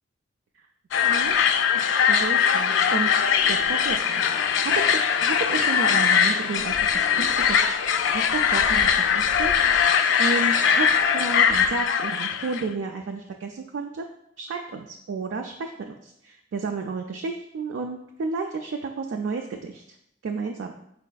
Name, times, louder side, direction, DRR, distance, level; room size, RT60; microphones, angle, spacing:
sound 1, 0.9-12.6, left 7 dB, 85° left, 0.3 m, -21 dB
voice 1, 1.0-1.3 2.1-7.6 8.1-10.9 11.1-14.0 14.4-19.8 20.2-20.7, right 4 dB, 85° right, 3 dB, 0.4 m, -32 dB
5.2 x 4.1 x 2.3 m, 0.75 s
head